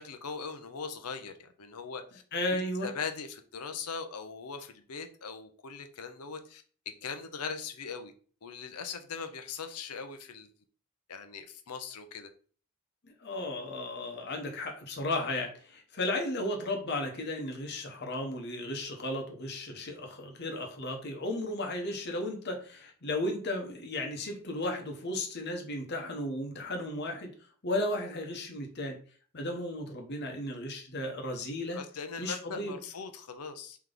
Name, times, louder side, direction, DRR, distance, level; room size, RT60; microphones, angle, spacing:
voice 1, 0.0-2.2 2.5-6.6 7.0-8.1 8.4-10.5 11.1-12.3 31.7-33.8, left 5 dB, 85° left, 7 dB, 0.7 m, -40 dB
voice 2, 2.3-2.9 13.0-27.3 27.6-29.0 29.3-31.8 32.2-32.8, left 1 dB, 50° left, 3 dB, 0.9 m, -34 dB
3.4 x 3.0 x 3.8 m, 0.43 s
head